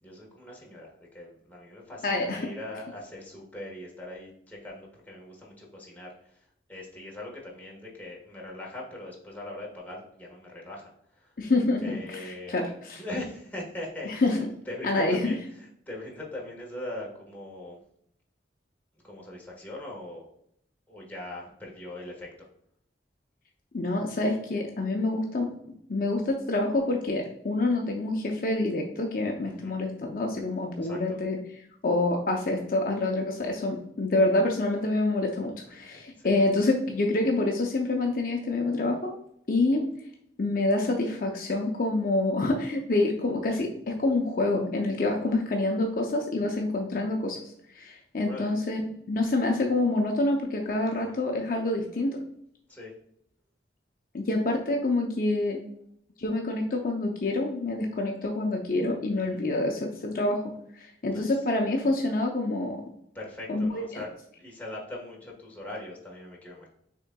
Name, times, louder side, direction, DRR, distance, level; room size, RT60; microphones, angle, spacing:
voice 1, 0.0-6.4 6.7-10.9 11.2-11.3 11.8-12.6 13.0-14.4 14.7-17.8 19.0-20.3 20.9-22.3 29.4-29.8 30.8-31.2 35.7-36.3 48.2-48.5 50.9-51.2 52.7-52.9 59.1-59.4 61.1-61.3 63.1-64.1 64.4-66.7, left 1 dB, 10° left, -3 dB, 1.3 m, -41 dB
voice 2, 2.0-2.4 11.4-13.0 14.1-14.4 14.8-15.3 23.7-25.5 25.9-39.1 39.5-39.8 40.4-47.4 47.7-52.2 54.1-55.6 56.2-62.8 63.5-64.0, left 2 dB, 50° left, 2 dB, 0.6 m, -27 dB
6.1 x 3.7 x 2.2 m, 0.71 s
head